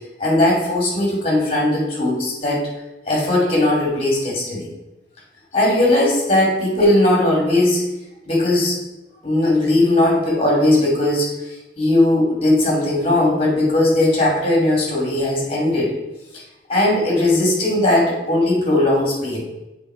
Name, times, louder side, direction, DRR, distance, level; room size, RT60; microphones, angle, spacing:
voice 1, 0.2-2.7 3.1-4.7 5.5-7.8 8.3-8.8 9.2-15.9 16.3-16.4 16.7-19.4, left 1 dB, 30° left, -2 dB, 2.3 m, -18 dB
7.3 x 4.1 x 4.9 m, 1.0 s
head